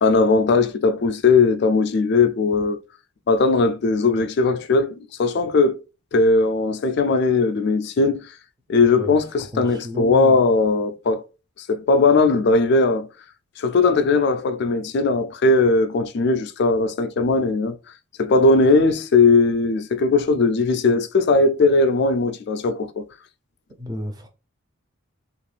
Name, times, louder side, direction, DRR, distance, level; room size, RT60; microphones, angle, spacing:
voice 1, 0.0-2.8 3.3-5.8 6.1-8.3 8.7-11.2 11.6-13.1 13.6-17.8 18.2-23.0, left 3 dB, 50° left, 0.3 m, -18 dB
voice 2, 9.5-10.4 23.8-24.3, left 1 dB, 20° right, 0.5 m, -31 dB
3.0 x 2.4 x 3.2 m
head